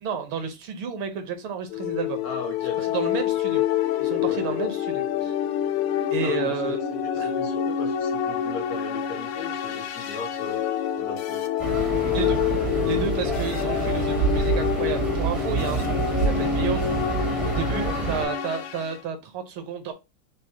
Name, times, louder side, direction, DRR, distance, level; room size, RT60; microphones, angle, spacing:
voice 1, 0.0-2.2 2.8-3.6 4.0-5.3 6.1-6.8 7.2-7.3 12.1-12.4 12.8-16.9 17.4-19.9, right 6 dB, 75° right, 1.5 m, -31 dB
sound 1, 1.7-19.0, left 9 dB, 90° left, 1.5 m, -27 dB
voice 2, 2.2-3.0 3.4-3.6 4.2-4.7 5.1-5.3 6.2-6.7 7.0-10.6 11.0-11.4 13.1-13.2 17.8-18.1, left 4 dB, 65° left, 0.9 m, -37 dB
sound 2, 11.6-18.2, right 4 dB, 35° right, 0.5 m, -27 dB
6.2 x 2.1 x 2.7 m
omnidirectional pair, 2.4 m